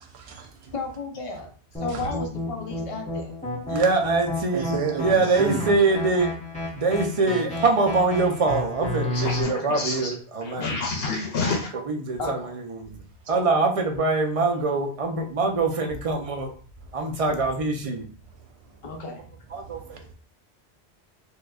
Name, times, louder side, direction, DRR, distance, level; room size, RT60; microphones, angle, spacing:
voice 1, 0.0-0.7 1.9-2.1 3.7-3.9 4.5-5.8 6.7-6.8 16.8-17.2 18.4-19.0 19.5-20.1, right 6 dB, 80° right, 1.0 m, -34 dB
voice 2, 0.7-1.5 1.8-3.3 12.2-12.5 17.3-17.4 18.8-19.2, left 3 dB, 40° left, 0.6 m, -33 dB
sound 1, 1.7-9.4, left 2 dB, 5° left, 1.1 m, -31 dB
voice 3, 3.7-6.3 6.7-10.6 12.0-13.0 13.3-16.5 16.9-18.1 19.5-20.1, right 3 dB, 45° right, 0.5 m, -24 dB
voice 4, 9.0-10.1 10.4-11.7, left 3 dB, 70° left, 0.8 m, -29 dB
4.4 x 2.3 x 2.3 m
omnidirectional pair, 1.1 m